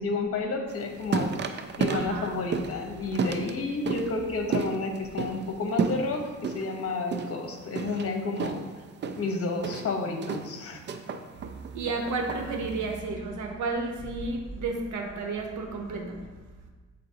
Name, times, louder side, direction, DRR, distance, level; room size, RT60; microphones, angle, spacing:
voice 1, 0.0-8.6 9.2-10.8, left 3 dB, 50° left, 3 dB, 1.1 m, -31 dB
sound 1, 0.7-13.0, right 5 dB, 40° right, 0.5 m, -33 dB
voice 2, 1.9-2.3 11.7-16.3, right 3 dB, 75° right, 2 dB, 1.0 m, -32 dB
8.3 x 3.9 x 2.9 m, 1.3 s
cardioid pair, 90°, 30 cm